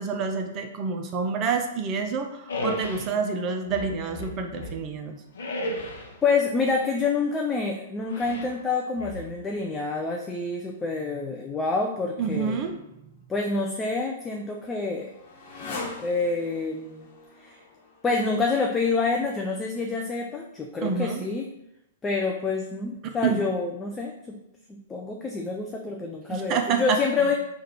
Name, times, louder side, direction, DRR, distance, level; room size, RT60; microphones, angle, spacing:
voice 1, 0.0-5.2 12.2-12.8 20.8-21.2 23.0-23.4 26.3-27.0, right 5 dB, 35° right, 5 dB, 0.5 m, -28 dB
sound 1, 2.5-3.1 3.7-4.9 5.3-6.2 8.1-8.6 9.0-9.6, left 1 dB, 70° left, 0.7 m, -34 dB
voice 2, 6.2-12.6 13.3-15.1 15.6-17.1 17.4-17.6 18.0-21.5 22.0-24.4 24.7-27.4, left 4 dB, 15° left, 1 dB, 0.4 m, -27 dB
Motorcycle, 14.0-19.0, left 3 dB, 45° left, 1.1 m, -42 dB
3.2 x 2.4 x 4.3 m, 0.84 s
figure-of-eight pair, 110°, 0 cm